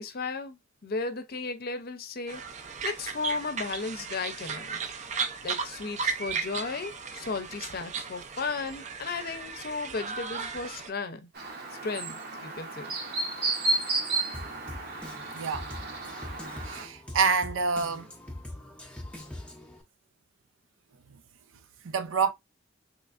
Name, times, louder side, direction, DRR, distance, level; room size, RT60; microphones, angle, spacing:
voice 1, 0.0-2.4 2.8-4.8 5.4-11.3 11.8-12.9, left 4 dB, 50° left, 0.6 m, -35 dB
sound 1, 2.3-10.9, right 5 dB, 35° right, 0.5 m, -36 dB
Chirp tweet, 11.4-16.9, right 2 dB, 55° right, 0.8 m, -32 dB
Drum kit, 14.3-19.8, left 1 dB, 5° left, 0.6 m, -43 dB
voice 2, 15.3-15.7 16.6-18.1 21.8-22.3, right 5 dB, 85° right, 0.5 m, -27 dB
3.4 x 3.1 x 2.5 m
head